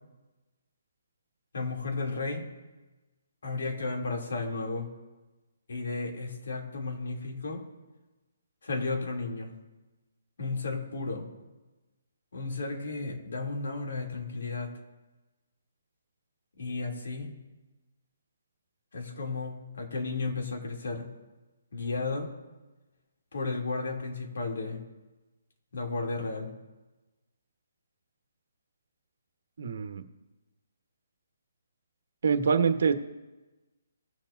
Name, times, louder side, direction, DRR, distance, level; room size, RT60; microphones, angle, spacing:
voice 1, 1.5-2.5 3.4-4.9 5.7-7.6 8.6-9.5 10.4-11.3 12.3-14.7 16.6-17.3 18.9-21.1 21.7-22.3 23.3-24.8 25.7-26.5, left 3 dB, 70° left, 0 dB, 2.7 m, -33 dB
voice 2, 29.6-30.0 32.2-32.9, right 6 dB, 60° right, 8 dB, 1.2 m, -25 dB
18.5 x 7.2 x 2.6 m, 1.1 s
hypercardioid pair, 160°, 0 cm